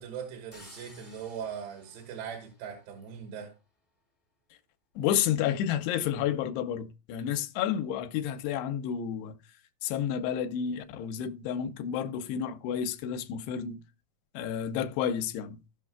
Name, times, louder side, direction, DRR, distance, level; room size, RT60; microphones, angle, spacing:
voice 1, 0.0-3.5, right 7 dB, 90° right, 3.3 m, -40 dB
sound 1, 0.5-3.4, left 2 dB, 25° left, 0.4 m, -55 dB
voice 2, 5.0-9.4 9.8-13.8 14.3-15.6, left 9 dB, 90° left, 2.7 m, -30 dB
15.5 x 5.7 x 2.2 m
omnidirectional pair, 4.7 m